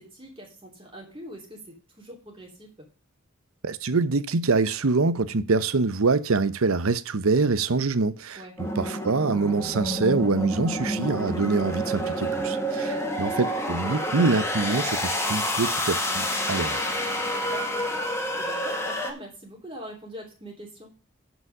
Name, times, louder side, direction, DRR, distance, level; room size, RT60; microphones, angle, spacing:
voice 1, 0.0-2.9 8.3-8.6 12.8-13.1 17.3-20.9, right 1 dB, 25° right, 3.0 m, -43 dB
voice 2, 3.6-8.4 8.8-16.8, right 3 dB, 85° right, 0.8 m, -25 dB
sound 1, 8.6-19.1, equal, 15° left, 1.4 m, -28 dB
9.8 x 5.1 x 6.5 m
head